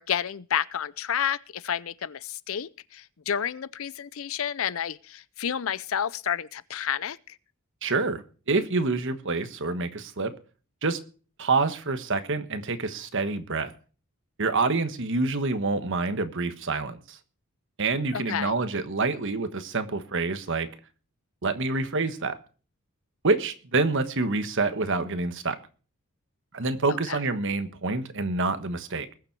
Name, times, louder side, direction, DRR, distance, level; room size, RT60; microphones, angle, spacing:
voice 1, 0.0-7.2 18.1-18.5 27.1-27.2, left 8 dB, 65° left, 0.5 m, -30 dB
voice 2, 7.8-10.3 10.8-11.0 11.4-13.7 14.4-17.2 17.8-20.7 21.4-22.4 23.2-25.6 26.5-29.1, right 3 dB, 60° right, 1.3 m, -27 dB
20.5 x 7.2 x 4.6 m
head